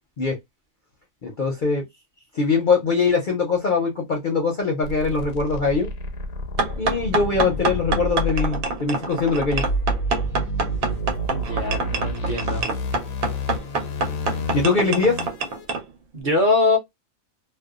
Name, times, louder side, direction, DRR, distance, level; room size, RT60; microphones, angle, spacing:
voice 1, 1.2-1.8 2.3-5.9 6.8-9.6 14.5-15.2, left 4 dB, 50° left, 0.6 m, -22 dB
sound 1, 4.8-15.6, equal, 85° left, 1.0 m, -29 dB
sound 2, 6.6-15.8, right 3 dB, 90° right, 1.1 m, -26 dB
voice 2, 11.3-12.7 16.1-16.8, left 3 dB, 45° right, 0.7 m, -22 dB
2.6 x 2.1 x 2.3 m
omnidirectional pair, 1.4 m